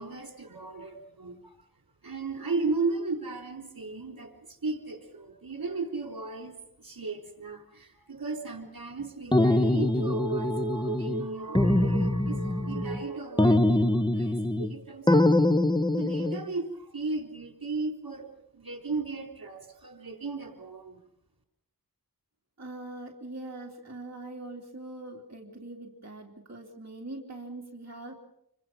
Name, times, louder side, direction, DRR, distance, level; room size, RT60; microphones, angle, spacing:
voice 1, 0.0-1.6 2.0-4.3 4.6-15.5 15.9-18.3 18.5-21.0, right 3 dB, 65° right, 4 dB, 3.9 m, -35 dB
sound 1, 9.3-11.3 11.5-13.0 13.4-14.7 15.1-16.4, left 1 dB, 10° left, 1.0 m, -24 dB
voice 2, 22.6-28.2, right 2 dB, 45° right, 0 dB, 3.0 m, -42 dB
27.0 x 24.5 x 5.9 m, 0.78 s
wide cardioid pair, 45°, 37 cm